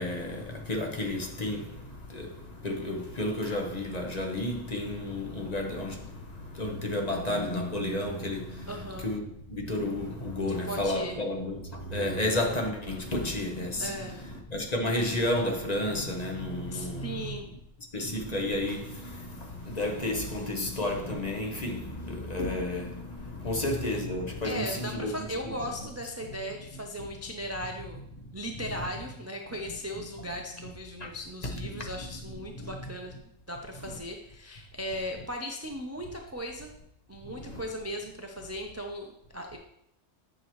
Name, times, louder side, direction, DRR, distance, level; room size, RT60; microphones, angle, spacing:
voice 1, 0.0-17.4 17.9-25.6 26.4-26.5 28.6-28.9 29.7-29.8 30.2-30.7 31.0-31.1 31.4-32.9 33.8-34.0 37.2-37.6, left 1 dB, 35° left, 1.1 m, -32 dB
voice 2, 8.7-9.1 10.4-11.2 13.8-14.2 16.7-17.5 24.4-28.0 28.3-33.2 33.5-36.7 37.1-39.6, equal, 25° right, 0.3 m, -37 dB
9.7 x 6.1 x 3.1 m
omnidirectional pair, 1.3 m